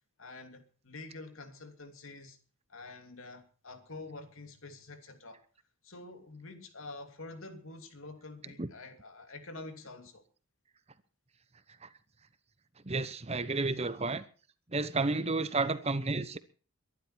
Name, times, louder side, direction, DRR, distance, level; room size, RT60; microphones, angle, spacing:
voice 1, 0.2-2.4 2.7-5.4 5.8-10.2, left 2 dB, 75° left, 2.8 m, -47 dB
voice 2, 12.9-14.2 14.7-16.4, right 3 dB, 30° right, 0.9 m, -31 dB
23.0 x 11.5 x 4.5 m
head